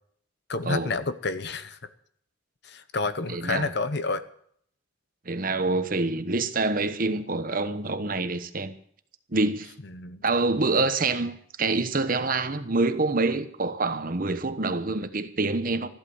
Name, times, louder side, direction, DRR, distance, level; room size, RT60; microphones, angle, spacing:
voice 1, 0.5-1.8 2.6-4.2 9.8-10.2, left 3 dB, 55° left, 0.9 m, -29 dB
voice 2, 3.3-3.7 5.3-8.7 9.3-9.7 10.2-15.9, right 3 dB, 45° right, 1.1 m, -26 dB
14.0 x 11.5 x 7.1 m
head